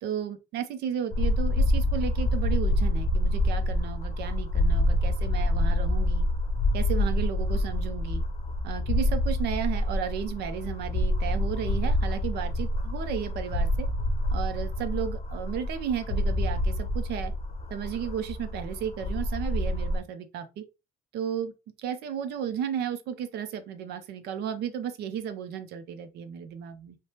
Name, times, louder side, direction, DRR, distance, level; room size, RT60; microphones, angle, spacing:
voice 1, 0.0-6.3 6.7-8.2 8.6-13.9 14.3-17.3 17.7-20.6 21.1-21.5 21.8-27.0, right 8 dB, 75° right, 0.6 m, -34 dB
sound 1, 1.1-20.0, left 1 dB, 40° left, 0.7 m, -27 dB
3.3 x 2.1 x 2.7 m
cardioid pair, 110°, 17 cm